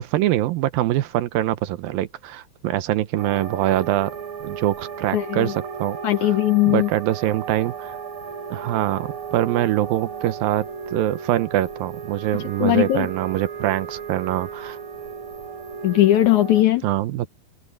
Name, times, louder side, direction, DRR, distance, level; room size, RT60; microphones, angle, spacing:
voice 1, 0.0-4.1 4.4-6.3 6.7-8.0 8.5-14.8 16.8-17.3, right 14 dB, 80° right, 2.6 m, -24 dB
sound 1, 3.2-16.6, right 6 dB, 50° right, 4.0 m, -35 dB
voice 2, 5.1-5.5 6.0-6.9 12.6-13.1 15.8-16.8, left 14 dB, 70° left, 2.0 m, -18 dB
omnidirectional pair, 4.2 m